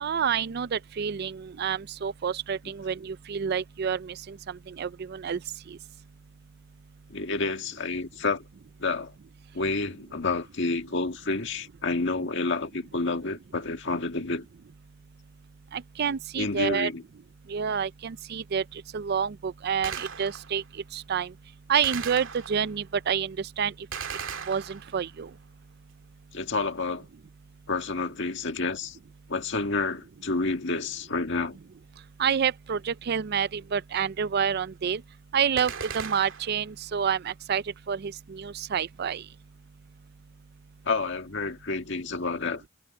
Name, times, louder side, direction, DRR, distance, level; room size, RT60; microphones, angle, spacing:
voice 1, 0.0-5.4 15.7-16.9 17.5-18.6 18.9-20.6 20.9-21.3 21.7-23.7 24.5-25.3 32.2-35.0 35.3-39.2, right 7 dB, 55° right, 0.4 m, -28 dB
voice 2, 7.1-8.4 8.8-9.1 9.5-14.5 16.4-17.0 26.3-27.1 27.7-29.0 29.3-31.6 40.9-42.6, left 3 dB, 65° left, 1.8 m, -29 dB
Gunshot gunfire, 19.8-20.6 21.8-22.8 23.9-25.2 35.6-36.6, right 6 dB, 80° right, 2.1 m, -37 dB
head